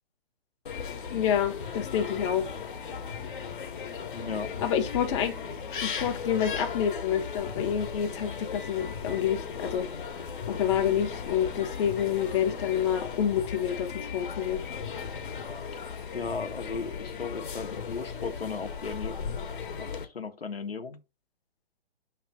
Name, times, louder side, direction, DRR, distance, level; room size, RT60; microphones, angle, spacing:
sound 1, 0.7-20.0, left 6 dB, 55° left, 1.3 m, -37 dB
voice 1, 1.1-2.5 4.6-5.3 5.8-9.9 10.5-14.6, left 9 dB, 30° left, 0.9 m, -28 dB
voice 2, 4.1-4.5 16.1-19.4 19.8-21.0, left 5 dB, 75° left, 1.1 m, -36 dB
6.1 x 3.2 x 5.4 m
figure-of-eight pair, 125°, 30 cm